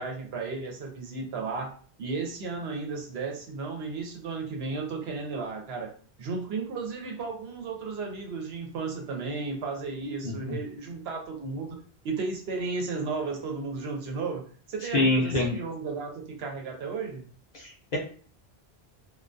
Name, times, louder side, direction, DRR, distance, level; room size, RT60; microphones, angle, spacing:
voice 1, 0.0-1.7 2.0-5.9 6.2-11.8 12.0-14.4 14.7-17.2, right 4 dB, 80° right, 2 dB, 0.9 m, -34 dB
voice 2, 10.2-10.6 14.9-15.5 17.5-18.0, left 2 dB, 50° left, -2 dB, 0.7 m, -26 dB
2.3 x 2.2 x 2.5 m, 0.43 s
omnidirectional pair, 1.1 m